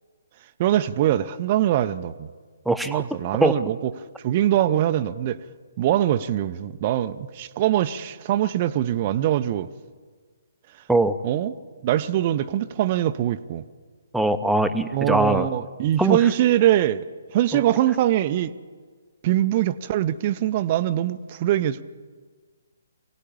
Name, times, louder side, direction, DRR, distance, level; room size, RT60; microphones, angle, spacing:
voice 1, 0.6-2.3 2.9-3.9 4.2-5.4 5.8-9.7 11.2-11.5 11.8-13.6 14.9-17.1 17.3-18.5 19.2-21.8, right 12 dB, 30° right, 0.7 m, -22 dB
voice 2, 2.7-3.0 3.4-3.5 10.9-11.2 14.1-15.5 16.0-16.2, right 2 dB, ahead, 0.9 m, -21 dB
23.5 x 17.5 x 8.7 m
figure-of-eight pair, 135°, 0 cm